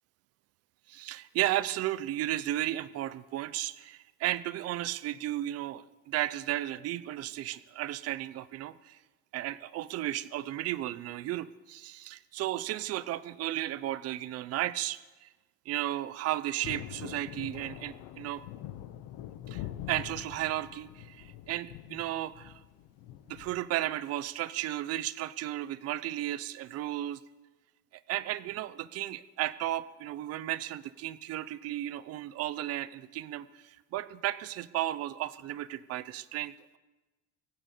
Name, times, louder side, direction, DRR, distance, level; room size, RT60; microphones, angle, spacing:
voice 1, 0.9-9.0 9.3-15.3 15.7-18.4 19.5-22.5 23.3-27.2 28.1-36.8, right 14 dB, 50° right, 15 dB, 0.7 m, -34 dB
Thunder, 16.6-23.6, left 12 dB, 75° left, 1.0 m, -44 dB
23.5 x 8.8 x 6.7 m, 1.2 s
cardioid pair, 160°, 32 cm